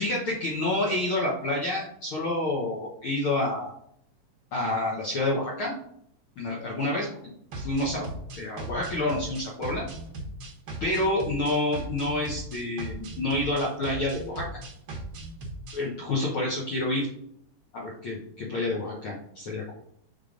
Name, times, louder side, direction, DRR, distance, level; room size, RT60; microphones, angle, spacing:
voice 1, 0.0-3.7 4.5-5.7 6.4-7.1 7.6-8.1 8.4-9.8 10.8-14.5 15.7-17.1 17.7-19.7, left 2 dB, 75° left, -3 dB, 1.2 m, -28 dB
sound 1, 7.5-15.8, right 2 dB, 65° right, 1.3 m, -38 dB
5.3 x 3.8 x 5.0 m, 0.69 s
omnidirectional pair, 3.8 m